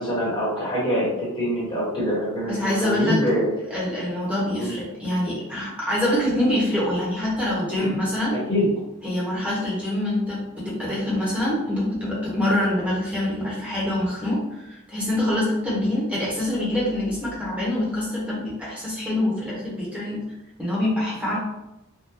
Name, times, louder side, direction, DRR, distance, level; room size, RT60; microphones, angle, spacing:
voice 1, 0.0-3.5 4.6-4.7 7.8-7.9 8.3-8.7, equal, 20° left, -7 dB, 1.2 m, -25 dB
voice 2, 2.5-3.2 3.7-8.4 9.0-20.2 20.6-21.4, left 1 dB, 5° right, -7 dB, 1.0 m, -25 dB
3.6 x 2.2 x 2.9 m, 0.91 s
head